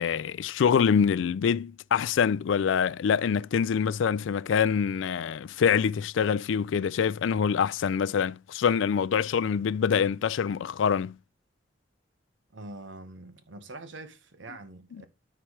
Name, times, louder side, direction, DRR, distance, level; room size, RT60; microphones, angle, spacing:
voice 1, 0.0-11.1, left 7 dB, 85° left, 0.3 m, -25 dB
voice 2, 12.5-15.1, right 2 dB, 80° right, 1.2 m, -44 dB
13.5 x 4.6 x 3.2 m
head